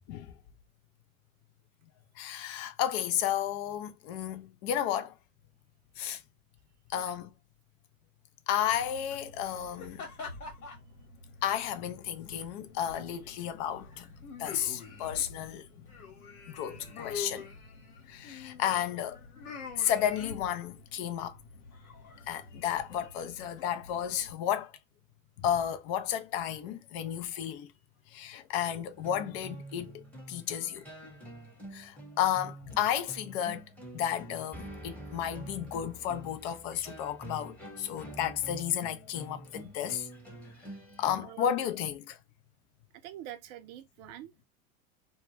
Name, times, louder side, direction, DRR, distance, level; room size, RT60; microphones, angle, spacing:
voice 1, 2.2-5.2 6.0-6.2 6.9-7.3 8.5-10.0 11.4-14.1 14.4-15.9 16.5-17.5 18.1-19.2 19.8-21.4 22.3-24.7 25.4-27.7 28.1-31.1 31.7-33.6 33.9-40.1 41.0-42.2, left 10 dB, 50° left, 0.5 m, -32 dB
sound 1, 8.7-24.3, left 4 dB, 85° left, 1.2 m, -46 dB
sound 2, 28.9-41.2, right 1 dB, 5° left, 1.1 m, -47 dB
voice 2, 41.2-41.5 43.0-44.4, right 12 dB, 40° right, 0.5 m, -45 dB
2.2 x 2.2 x 3.1 m
hypercardioid pair, 95°, 42 cm